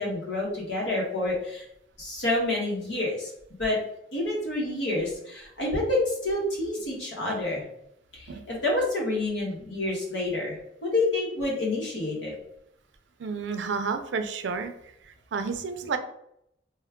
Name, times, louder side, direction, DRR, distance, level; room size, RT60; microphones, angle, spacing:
voice 1, 0.0-1.6 2.0-3.3 3.6-3.8 4.1-7.6 8.1-12.3, left 2 dB, 85° left, -3 dB, 1.3 m, -28 dB
voice 2, 13.2-14.7 15.1-16.0, right 5 dB, 85° right, 8 dB, 0.4 m, -31 dB
3.1 x 2.2 x 3.5 m, 0.76 s
head